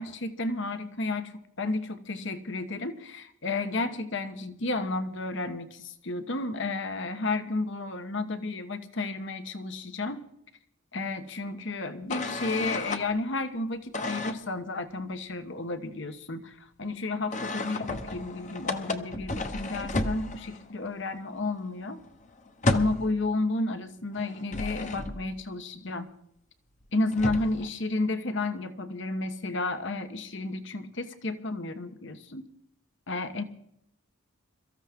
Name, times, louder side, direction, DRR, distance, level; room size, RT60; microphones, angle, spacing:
voice 1, 0.0-10.2 10.9-22.0 22.7-26.1 26.9-32.5 33.1-33.4, left 2 dB, 65° left, 9 dB, 1.2 m, -32 dB
sound 1, 12.1-13.1 13.9-14.4 17.3-20.7 21.0-21.2 21.4-23.2 24.1-25.4 26.8-26.9 27.1-27.7, left 2 dB, 35° left, 1.0 m, -32 dB
23.0 x 14.0 x 3.7 m, 0.75 s
head